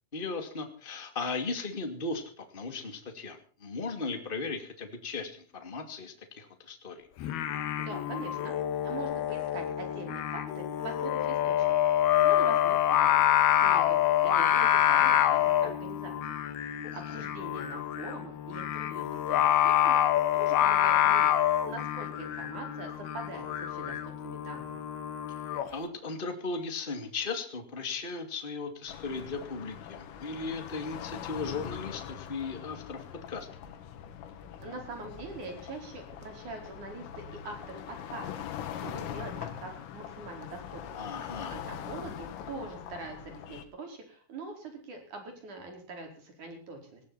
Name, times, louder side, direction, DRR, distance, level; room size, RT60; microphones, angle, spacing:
voice 1, 0.1-7.1 16.8-17.2 25.7-33.5 40.9-41.6, left 4 dB, 40° left, 6 dB, 0.7 m, -37 dB
Singing, 7.2-25.7, left 11 dB, 65° left, 2.8 m, -27 dB
voice 2, 7.8-8.6 8.8-11.6 11.8-11.9 12.2-13.3 13.6-16.3 16.9-20.0 20.3-21.3 21.6-24.9 34.6-37.8 38.1-38.3 38.8-41.0 41.5-47.0, right 3 dB, 40° right, 4 dB, 5.9 m, -43 dB
sound 1, 28.9-43.6, left 9 dB, 80° left, 4.3 m, -42 dB
19.0 x 17.5 x 4.3 m, 0.39 s
omnidirectional pair, 5.9 m